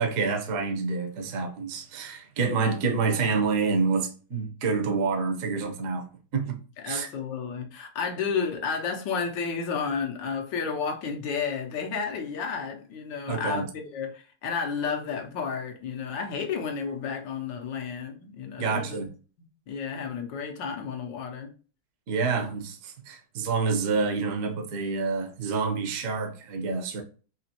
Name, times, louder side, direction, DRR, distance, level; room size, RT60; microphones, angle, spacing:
voice 1, 0.0-6.6 6.8-7.1 13.3-13.7 18.6-19.1 22.1-27.0, right 4 dB, 55° right, 1.0 m, -28 dB
voice 2, 6.8-18.9 19.7-21.5, left 5 dB, 80° left, 1.5 m, -31 dB
4.3 x 2.9 x 2.8 m
omnidirectional pair, 2.0 m